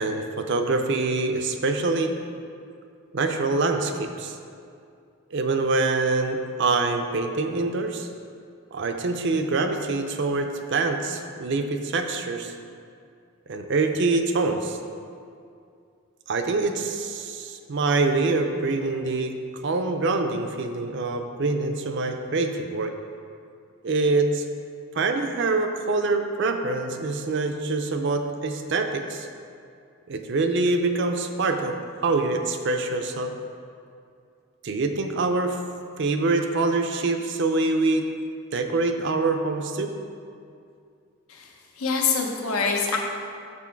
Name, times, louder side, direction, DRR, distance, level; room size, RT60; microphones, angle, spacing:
voice 1, 0.0-2.2 3.1-4.4 5.3-8.1 8.7-12.5 13.5-14.8 16.3-22.9 23.8-24.4 24.9-29.3 30.1-31.8 32.0-33.3 34.6-35.6 36.0-38.1 38.5-39.9, right 3 dB, 55° right, 6 dB, 0.5 m, -25 dB
voice 2, 41.3-43.0, left 5 dB, 85° left, 1 dB, 0.9 m, -25 dB
6.3 x 6.1 x 4.5 m, 2.4 s
head